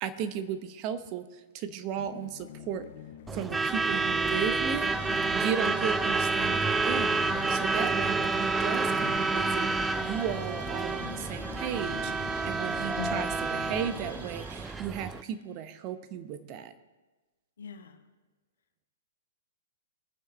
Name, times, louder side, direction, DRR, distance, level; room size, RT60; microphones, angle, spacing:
voice 1, 0.0-2.9 3.3-7.2 7.5-9.7 10.0-16.7, right 8 dB, 35° right, 9 dB, 1.0 m, -35 dB
sound 1, 2.0-14.2, left 10 dB, 50° left, 0.9 m, -45 dB
Truck / Alarm, 3.3-15.2, right 3 dB, 10° right, 0.4 m, -29 dB
sound 2, 3.5-15.4, right 3 dB, 70° right, 1.5 m, -48 dB
voice 2, 12.9-13.4 17.6-18.0, left 7 dB, 65° left, 6 dB, 1.4 m, -40 dB
21.0 x 9.3 x 3.3 m, 1.2 s
figure-of-eight pair, 110°, 0 cm